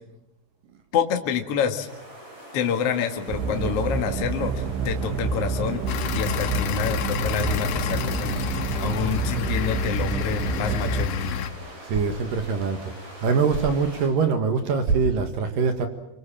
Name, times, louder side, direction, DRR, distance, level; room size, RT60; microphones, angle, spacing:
voice 1, 0.9-1.9 2.5-5.8 6.1-11.5, left 7 dB, 50° left, 5 dB, 1.9 m, -27 dB
sound 1, 1.9-14.1, right 1 dB, 30° right, 8.0 m, -44 dB
sound 2, 3.3-11.1, right 4 dB, 75° right, 3.1 m, -28 dB
sound 3, 5.9-11.5, left 8 dB, 70° left, 2.2 m, -30 dB
voice 2, 11.8-12.8 13.2-15.9, right 5 dB, 60° right, 7 dB, 2.8 m, -23 dB
27.0 x 24.0 x 7.4 m, 0.89 s
omnidirectional pair, 5.2 m